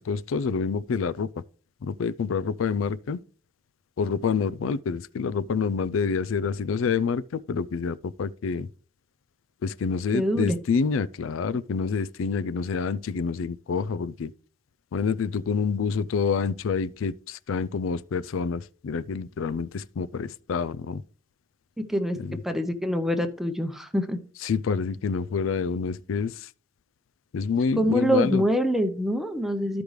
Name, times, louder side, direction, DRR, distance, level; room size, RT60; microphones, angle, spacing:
voice 1, 0.0-1.4 1.8-3.2 4.0-8.7 9.6-14.3 14.9-21.0 22.2-22.4 24.4-26.5 27.3-28.4, left 5 dB, 85° left, 0.4 m, -27 dB
voice 2, 10.1-10.6 21.9-22.2 22.4-24.2 27.8-29.8, equal, ahead, 0.7 m, -25 dB
13.5 x 5.1 x 3.2 m
head